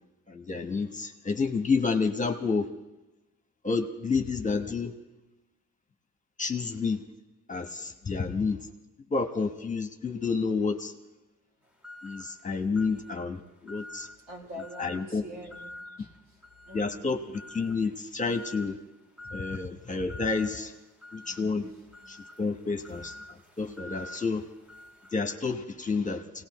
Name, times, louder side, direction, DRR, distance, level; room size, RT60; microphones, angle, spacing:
voice 1, 0.3-2.7 3.6-4.9 6.4-7.0 7.5-8.6 9.1-10.9 12.0-14.1 14.8-15.2 16.7-17.2 17.5-18.7 19.3-20.7 21.1-21.7 22.1-24.4 25.1-26.2, left 4 dB, 25° left, 5 dB, 1.2 m, -29 dB
sound 1, 11.8-12.3 12.8-13.2 13.7-14.2 14.6-15.0 15.5-15.9 16.4-16.9 17.3-17.8 18.3-18.7 19.2-19.6 20.1-20.5 21.0-25.2, left 1 dB, 5° right, 1.5 m, -46 dB
voice 2, 14.3-16.1 16.6-17.1, equal, 65° right, 0 dB, 4.0 m, -44 dB
26.0 x 18.0 x 3.1 m, 1.0 s
cardioid pair, 90°, 30 cm